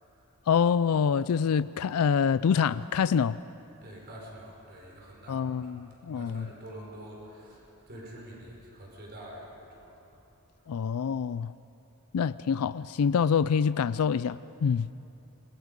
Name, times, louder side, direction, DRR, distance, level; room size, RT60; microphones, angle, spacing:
voice 1, 0.5-3.4 5.3-6.5 10.7-11.5 12.1-14.9, left 6 dB, 85° left, 0.4 m, -26 dB
voice 2, 3.8-5.7 6.1-10.2, right 1 dB, 50° right, 4.7 m, -46 dB
25.0 x 23.0 x 5.3 m
head